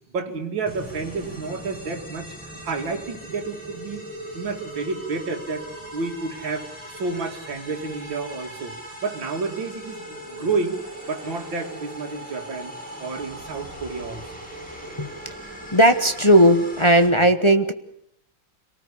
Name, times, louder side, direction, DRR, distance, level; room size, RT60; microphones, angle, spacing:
voice 1, 0.1-4.1 4.3-10.8 11.1-14.2 17.1-17.2, right 4 dB, 65° right, 2 dB, 3.1 m, -30 dB
sound 1, 0.7-17.1, right 1 dB, 5° left, 7.2 m, -39 dB
voice 2, 15.7-17.7, right 1 dB, 25° left, 8 dB, 0.7 m, -16 dB
27.0 x 18.5 x 8.5 m, 0.75 s
omnidirectional pair, 2.2 m